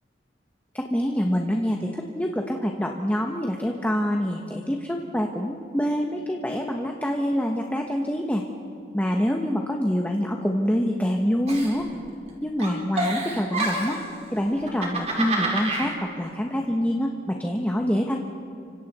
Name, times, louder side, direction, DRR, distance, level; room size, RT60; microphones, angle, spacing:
voice 1, 0.7-8.4 8.9-11.9 12.4-14.0 14.3-18.2, equal, 10° left, 1 dB, 1.2 m, -26 dB
Giggle, 11.5-12.3 12.6-14.1 14.6-15.9, right 2 dB, 35° right, 4.2 m, -28 dB
30.0 x 25.5 x 4.3 m, 2.5 s
head